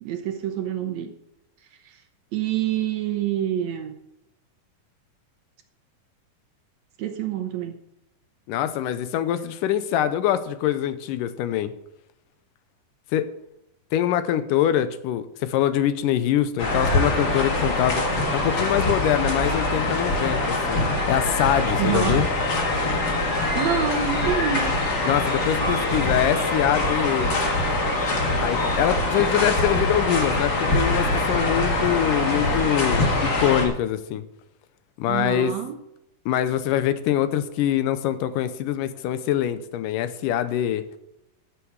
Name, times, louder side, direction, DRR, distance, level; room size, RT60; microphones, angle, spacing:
voice 1, 0.0-1.1 1.9-2.0 2.3-4.0 7.0-7.8 21.8-22.2 23.5-24.8 35.1-35.7, right 10 dB, 70° right, 7 dB, 1.8 m, -27 dB
voice 2, 8.5-11.7 13.1-13.3 13.9-18.0 18.3-20.8 21.1-22.3 25.1-27.3 28.4-34.2 35.0-35.5 36.3-40.8, left 11 dB, 90° left, 12 dB, 2.3 m, -24 dB
sound 1, 16.6-33.7, left 2 dB, 35° left, 1.8 m, -23 dB
14.0 x 7.2 x 4.7 m, 0.86 s
omnidirectional pair, 3.8 m